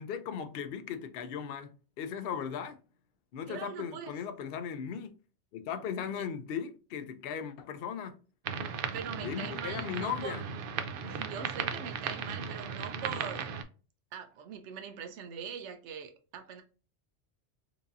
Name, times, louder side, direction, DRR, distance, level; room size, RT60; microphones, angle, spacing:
voice 1, 0.0-1.7 2.0-2.8 3.3-5.1 5.5-8.2 9.2-10.4, left 7 dB, 65° left, 0.7 m, -37 dB
voice 2, 3.5-4.1 6.2-6.3 8.9-10.4 11.1-13.5 14.1-16.6, right 7 dB, 90° right, 0.9 m, -42 dB
sound 1, 8.4-13.6, right 6 dB, 60° right, 0.7 m, -36 dB
4.7 x 2.7 x 2.5 m
omnidirectional pair, 1.2 m